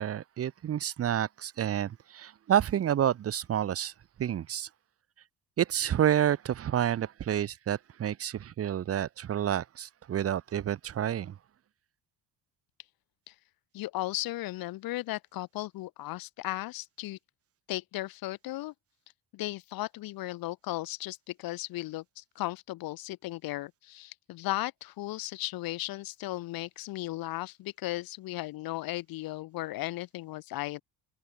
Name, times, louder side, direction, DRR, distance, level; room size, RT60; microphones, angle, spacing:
voice 1, 0.0-3.9 4.2-4.7 5.6-11.3, right 10 dB, 35° right, 1.5 m, -29 dB
voice 2, 13.7-17.2 17.7-18.7 19.3-30.8, left 17 dB, 55° left, 1.0 m, -36 dB
cardioid pair, 175°, 41 cm